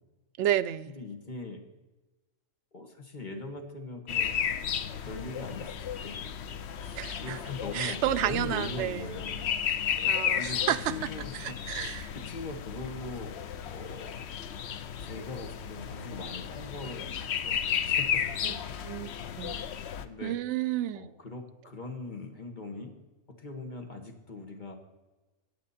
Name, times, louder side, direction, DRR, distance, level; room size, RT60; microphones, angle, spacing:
voice 1, 0.4-0.9 6.9-7.4 7.7-9.1 10.1-12.1 18.4-18.6 18.9-19.1 19.4-19.6 20.2-21.1, right 12 dB, 70° right, 0.8 m, -31 dB
voice 2, 1.0-1.6 2.7-4.4 5.0-6.3 6.8-9.5 10.3-10.6 10.9-11.3 11.8-11.9 12.3-14.2 15.0-18.8 20.0-20.4 20.9-23.0 23.4-24.7, left 3 dB, 35° left, 1.7 m, -41 dB
sound 1, 4.1-20.0, left 8 dB, 60° left, 0.9 m, -33 dB
15.5 x 8.7 x 4.2 m
omnidirectional pair, 1.3 m